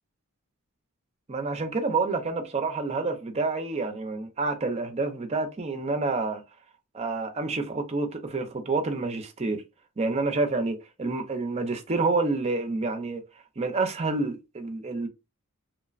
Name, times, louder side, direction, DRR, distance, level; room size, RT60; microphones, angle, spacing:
voice 1, 1.3-6.4 6.9-9.6 10.0-13.2 13.6-15.1, right 3 dB, 30° right, 0.4 m, -28 dB
3.1 x 2.1 x 2.3 m
head